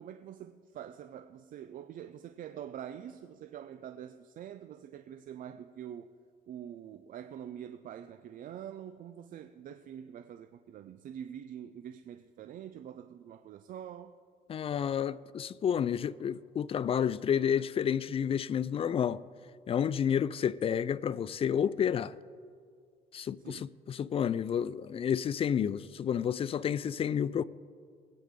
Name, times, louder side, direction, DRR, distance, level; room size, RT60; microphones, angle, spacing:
voice 1, 0.0-6.1 6.5-14.2 23.4-23.8, right 9 dB, 55° right, 0.5 m, -45 dB
voice 2, 14.5-19.2 19.7-22.1 23.1-23.6 23.9-27.4, left 8 dB, 35° left, 0.3 m, -30 dB
22.0 x 9.1 x 3.7 m
cardioid pair, 110°, 17 cm